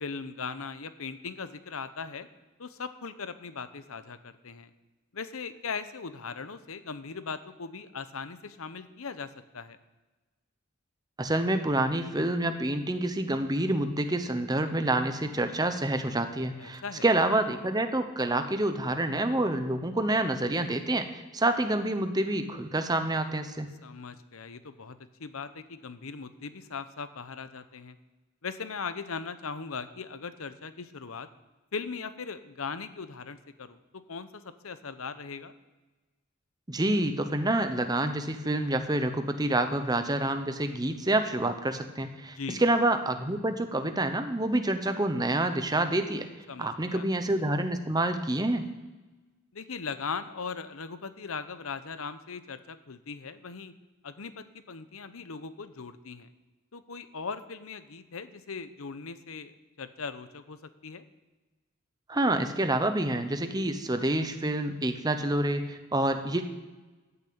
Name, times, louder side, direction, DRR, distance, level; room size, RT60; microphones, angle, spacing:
voice 1, 0.0-2.3 2.6-4.7 5.1-9.8 16.6-17.0 23.8-28.0 28.4-31.3 31.7-33.8 34.1-35.5 42.4-42.6 46.5-47.1 49.5-53.7 54.0-56.3 56.7-61.0, left 5 dB, 90° left, 12 dB, 0.9 m, -39 dB
voice 2, 11.2-23.7 36.7-46.3 46.6-48.7 62.1-66.4, right 1 dB, 20° right, 8 dB, 0.9 m, -27 dB
14.0 x 6.8 x 8.7 m, 1.2 s
head